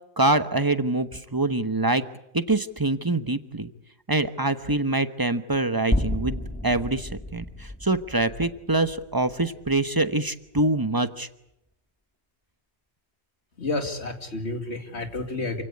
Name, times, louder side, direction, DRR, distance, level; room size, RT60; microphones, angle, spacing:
voice 1, 0.2-2.0 2.3-3.7 4.1-11.3, right 2 dB, 20° right, 11 dB, 1.1 m, -25 dB
sound 1, 5.9-10.1, left 1 dB, 10° left, 1.7 m, -31 dB
voice 2, 13.6-15.6, left 2 dB, 75° left, 6 dB, 2.6 m, -30 dB
28.0 x 17.0 x 9.7 m, 0.80 s
omnidirectional pair, 1.1 m